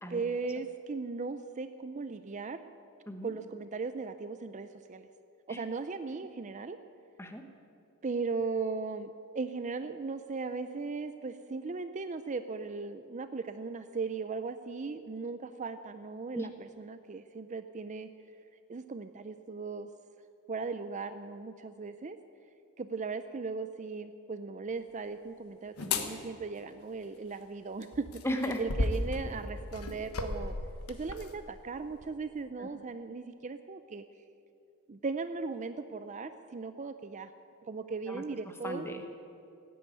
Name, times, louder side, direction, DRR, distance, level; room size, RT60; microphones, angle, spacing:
voice 1, 0.1-2.6 3.2-5.1 5.5-6.8 8.0-18.1 18.7-19.9 20.5-22.2 22.8-28.1 28.6-30.5 30.9-34.0 34.9-37.3 37.7-38.9, right 4 dB, 35° right, 10 dB, 0.5 m, -37 dB
sound 1, 25.8-26.1 27.8-31.3 32.0-32.1, left 2 dB, 90° left, 1.3 m, -35 dB
voice 2, 28.2-28.6 32.6-32.7 38.1-38.2 38.6-39.1, equal, 10° left, 5 dB, 1.2 m, -36 dB
16.0 x 9.4 x 9.1 m, 2.6 s
head